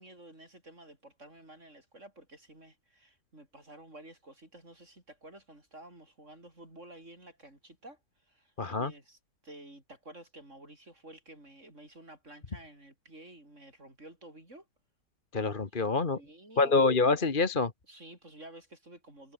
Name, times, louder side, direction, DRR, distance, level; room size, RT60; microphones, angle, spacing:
voice 1, 0.0-9.2 9.4-14.7 15.7-15.9 16.2-16.7 17.9-19.3, right 1 dB, 35° right, 7.0 m, -52 dB
voice 2, 8.6-8.9 15.3-16.2 16.6-17.7, left 3 dB, 25° left, 1.4 m, -26 dB
omnidirectional pair, 2.3 m